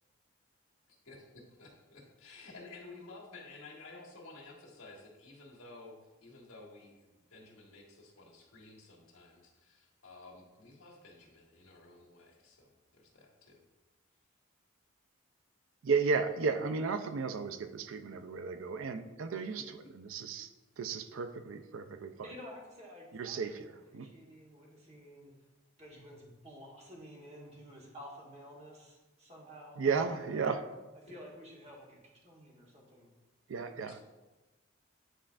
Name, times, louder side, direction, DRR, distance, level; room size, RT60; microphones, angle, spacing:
voice 1, 1.0-13.6 33.9-34.0, left 3 dB, 80° left, -1 dB, 1.5 m, -53 dB
voice 2, 15.8-20.5 20.8-22.1 23.1-24.1 29.8-30.6 33.5-34.0, right 5 dB, 70° right, 8 dB, 0.4 m, -34 dB
voice 3, 22.2-25.3 25.8-30.4 30.9-33.1, equal, 30° right, -3 dB, 1.2 m, -52 dB
9.1 x 4.3 x 2.5 m, 1.1 s
head